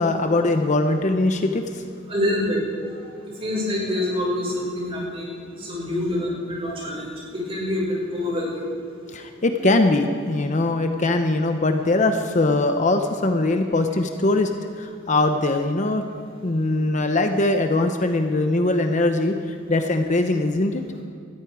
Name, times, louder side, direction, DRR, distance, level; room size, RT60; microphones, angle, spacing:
voice 1, 0.0-1.8 9.1-14.5 14.8-16.0 16.4-20.8, left 2 dB, 40° left, 6 dB, 0.8 m, -21 dB
voice 2, 2.1-2.6 3.4-8.6, left 1 dB, 30° right, -3 dB, 5.3 m, -26 dB
19.5 x 14.5 x 4.8 m, 2.4 s
head